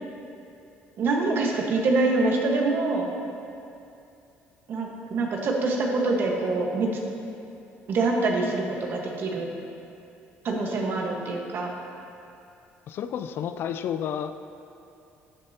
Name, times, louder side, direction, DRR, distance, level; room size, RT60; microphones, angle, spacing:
voice 1, 1.0-3.1 4.7-6.9 7.9-9.5 10.4-11.7, right 3 dB, 55° right, 0 dB, 1.4 m, -25 dB
voice 2, 12.9-14.3, left 9 dB, 60° left, 10 dB, 0.4 m, -31 dB
12.0 x 7.5 x 2.9 m, 2.6 s
cardioid pair, 95°, 4 cm